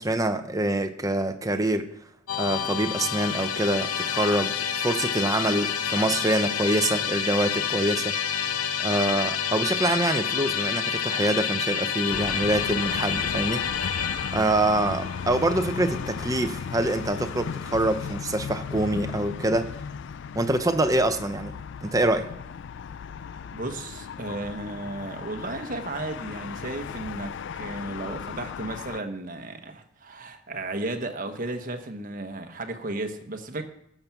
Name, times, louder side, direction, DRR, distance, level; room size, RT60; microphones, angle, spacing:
voice 1, 0.0-1.9 2.4-8.2 8.8-13.6 14.3-19.7 20.3-22.3, right 1 dB, 15° right, 0.8 m, -25 dB
Musical instrument, 2.3-17.5, left 7 dB, 85° left, 1.0 m, -29 dB
sound 1, 12.1-29.0, left 6 dB, 55° left, 0.3 m, -36 dB
voice 2, 23.5-33.6, right 2 dB, 40° right, 1.1 m, -34 dB
15.0 x 6.9 x 5.9 m
head